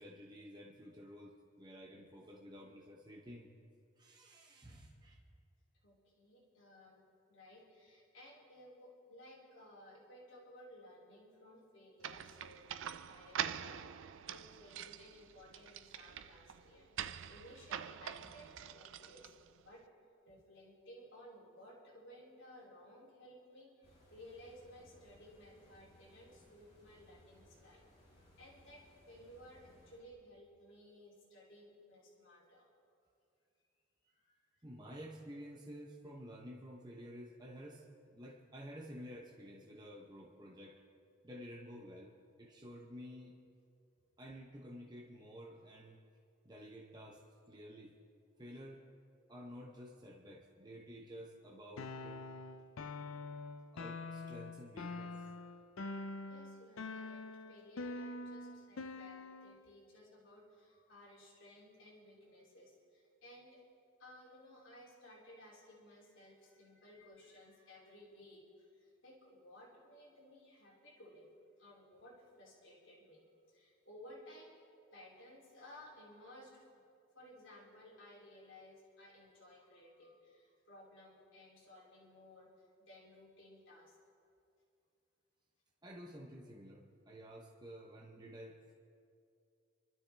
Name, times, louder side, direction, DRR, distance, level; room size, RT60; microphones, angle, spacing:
voice 1, 0.0-3.5 4.0-5.2 34.6-37.8 38.1-40.8 41.2-42.1 42.4-43.3 44.2-46.0 46.4-47.2 47.5-47.9 48.4-48.8 49.3-52.2 53.7-55.2 85.8-88.7, equal, 20° right, -1 dB, 0.9 m, -51 dB
voice 2, 5.8-12.8 13.1-16.9 17.3-19.8 20.2-27.9 28.1-32.7 34.0-34.6 56.2-63.6 64.0-71.3 71.6-76.7 77.1-84.0, left 1 dB, 70° left, -4 dB, 3.1 m, -58 dB
sound 1, 12.0-19.7, right 9 dB, 70° right, 0.4 m, -45 dB
sound 2, 23.8-30.0, equal, 30° left, 3.6 m, -65 dB
sound 3, 51.8-59.6, left 3 dB, 85° left, 0.6 m, -45 dB
26.5 x 12.5 x 3.4 m, 2.5 s
head